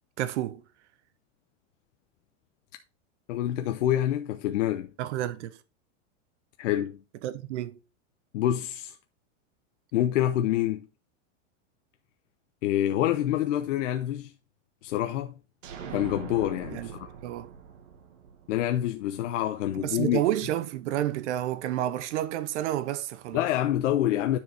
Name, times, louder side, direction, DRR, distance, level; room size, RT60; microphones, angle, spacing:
voice 1, 0.2-0.6 5.0-5.6 7.2-7.8 16.7-16.9 17.2-17.5 19.8-23.4, right 13 dB, 65° right, 0.9 m, -30 dB
voice 2, 3.3-4.9 6.6-7.0 8.3-8.9 9.9-10.9 12.6-14.3 14.8-15.3 15.9-16.9 18.5-20.2 23.3-24.4, left 12 dB, 75° left, 0.9 m, -26 dB
sound 1, 15.6-19.3, right 7 dB, 85° right, 1.7 m, -43 dB
9.6 x 4.8 x 4.2 m
supercardioid pair, 160°, 37 cm